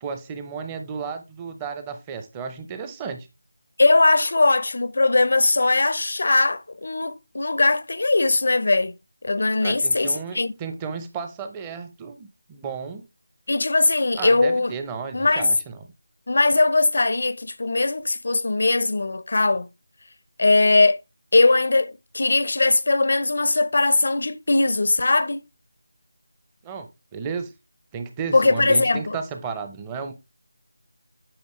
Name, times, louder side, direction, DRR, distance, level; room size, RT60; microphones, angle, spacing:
voice 1, 0.0-3.3 9.6-13.1 14.1-15.9 26.6-27.5 27.9-30.1, right 5 dB, 10° right, 0.7 m, -33 dB
voice 2, 3.8-8.9 9.2-10.5 13.5-14.7 15.1-15.5 16.3-19.7 20.4-21.0 21.3-25.4 28.3-29.2, left 3 dB, 55° left, 0.6 m, -20 dB
8.8 x 5.9 x 3.1 m
figure-of-eight pair, 170°, 0 cm